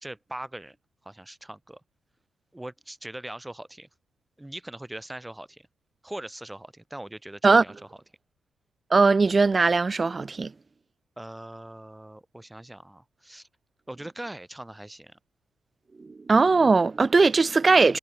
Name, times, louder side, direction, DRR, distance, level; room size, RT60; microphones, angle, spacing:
voice 1, 0.0-0.8 1.0-1.8 2.5-3.9 4.4-5.7 6.0-7.9 11.2-13.5 13.9-15.2, right 1 dB, 10° right, 1.0 m, -41 dB
voice 2, 8.9-10.5 16.0-18.0, right 4 dB, 30° right, 0.3 m, -20 dB
cardioid pair, 90°, 0 cm